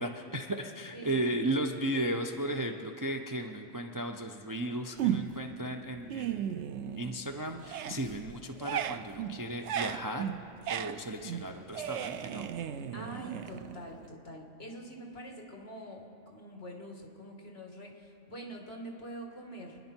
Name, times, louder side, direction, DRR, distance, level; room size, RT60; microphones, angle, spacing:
voice 1, 0.0-10.3 10.7-12.5, right 1 dB, 20° right, 3 dB, 0.6 m, -35 dB
voice 2, 0.9-1.3 12.9-19.8, equal, 55° left, 1 dB, 2.2 m, -45 dB
sound 1, 5.0-5.5 5.9-7.3 7.6-14.1, right 9 dB, 70° right, 0.9 m, -36 dB
29.0 x 10.5 x 4.5 m, 2.8 s
omnidirectional pair, 1.3 m